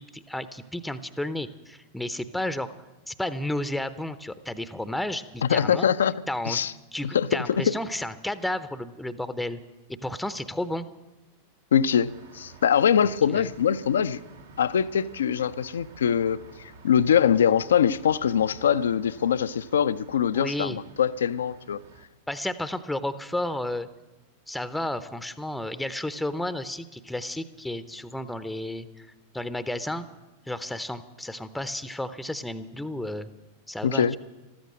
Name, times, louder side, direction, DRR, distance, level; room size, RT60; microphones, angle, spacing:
voice 1, 0.0-2.7 3.1-5.9 6.3-6.6 6.9-9.6 9.9-10.9 13.0-13.5 20.3-20.8 22.3-23.9 24.5-29.1 29.3-30.1 30.5-33.3 33.7-34.0, left 1 dB, 5° left, 13 dB, 0.7 m, -32 dB
voice 2, 5.4-6.1 6.5-6.7 7.0-7.3 7.7-7.8 11.7-14.2 14.6-21.8 33.8-34.2, left 8 dB, 65° left, 16 dB, 0.4 m, -23 dB
sound 1, 12.0-22.0, right 4 dB, 70° right, 1.5 m, -51 dB
14.5 x 13.5 x 6.3 m, 1.1 s
figure-of-eight pair, 90°, 0 cm